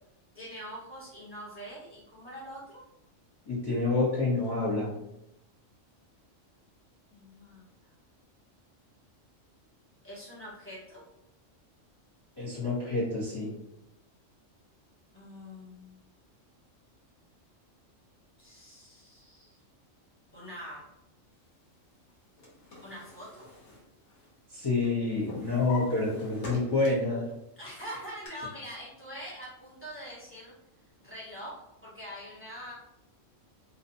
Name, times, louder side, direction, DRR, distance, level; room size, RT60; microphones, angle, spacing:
voice 1, 0.3-2.8 7.1-7.9 10.0-11.0 15.1-16.0 18.4-19.6 20.3-20.8 22.8-23.5 27.6-30.5 31.0-32.7, equal, 15° right, -7 dB, 0.6 m, -44 dB
voice 2, 3.5-5.0 12.4-13.5 24.5-27.3, left 3 dB, 30° left, -7 dB, 0.5 m, -28 dB
Drawer open or close, 22.1-24.5 24.8-27.2 27.6-28.3, left 3 dB, 60° left, 1.1 m, -44 dB
2.6 x 2.2 x 2.6 m, 0.85 s
omnidirectional pair, 1.3 m